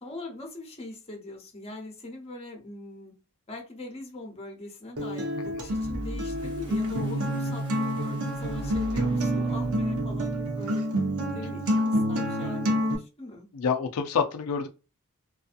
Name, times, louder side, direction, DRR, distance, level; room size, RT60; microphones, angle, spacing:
voice 1, 0.0-3.2 3.5-10.9 11.3-13.5, left 2 dB, 25° left, 0.8 m, -41 dB
Acoustic guitar, 5.0-13.0, equal, 70° right, 0.6 m, -28 dB
sound 1, 5.6-10.7, equal, 20° right, 0.8 m, -41 dB
voice 2, 13.5-14.7, left 6 dB, 80° left, 0.4 m, -27 dB
2.6 x 2.3 x 2.5 m
head